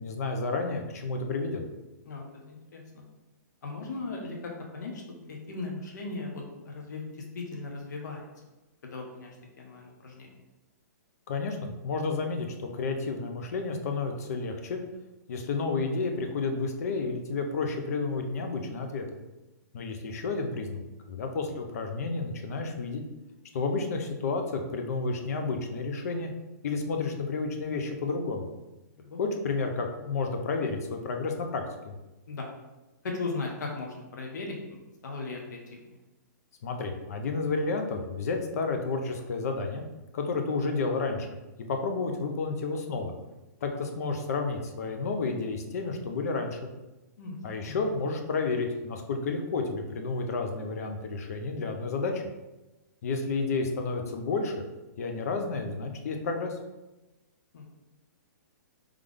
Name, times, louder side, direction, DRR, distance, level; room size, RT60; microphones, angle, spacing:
voice 1, 0.0-1.6 11.3-14.8 15.3-19.1 19.7-20.8 21.1-23.0 23.5-26.3 26.6-28.5 29.2-31.9 36.6-39.8 40.1-41.3 41.7-43.1 43.6-46.7 47.4-52.2 53.0-54.6 55.0-56.5, left 3 dB, 55° left, 4 dB, 0.7 m, -31 dB
voice 2, 2.1-3.0 3.6-5.0 5.3-7.1 7.3-8.3 8.8-10.3 29.0-29.2 32.3-32.5 33.0-35.8 47.2-47.4 47.6-47.9 57.5-57.7, left 3 dB, 70° left, 0 dB, 1.0 m, -38 dB
3.7 x 3.3 x 3.4 m, 1.0 s
hypercardioid pair, 165°, 10 cm